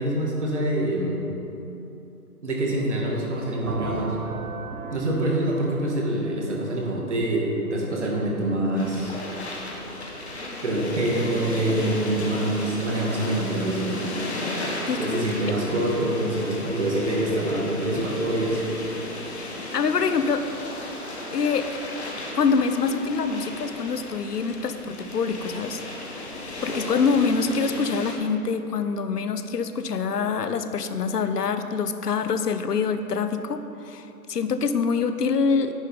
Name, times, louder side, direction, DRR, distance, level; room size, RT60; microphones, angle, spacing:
voice 1, 0.0-1.3 2.4-4.2 4.9-9.1 10.6-14.0 15.0-18.6, right 1 dB, 50° right, -2 dB, 1.9 m, -25 dB
sound 1, 3.7-7.4, right 4 dB, 65° right, 1.0 m, -36 dB
sound 2, 8.8-28.1, left 2 dB, 45° left, 1.3 m, -35 dB
voice 2, 14.8-15.3 19.3-20.4 21.3-21.8 22.3-35.7, left 5 dB, 80° left, 9 dB, 0.8 m, -25 dB
9.9 x 6.5 x 5.3 m, 2.8 s
hypercardioid pair, 165°, 46 cm